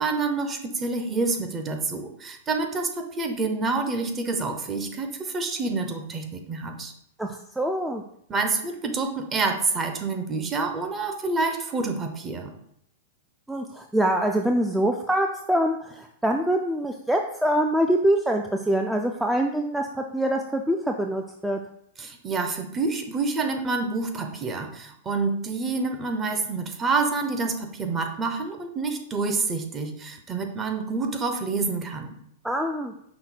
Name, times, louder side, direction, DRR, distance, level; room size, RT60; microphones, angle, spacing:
voice 1, 0.0-6.9 8.3-12.5 22.0-32.2, right 3 dB, 25° right, 5 dB, 0.7 m, -28 dB
voice 2, 7.2-8.0 13.5-21.6 32.4-32.9, right 1 dB, 5° right, 3 dB, 0.3 m, -24 dB
5.7 x 2.1 x 4.1 m, 0.72 s
hypercardioid pair, 110°, 0 cm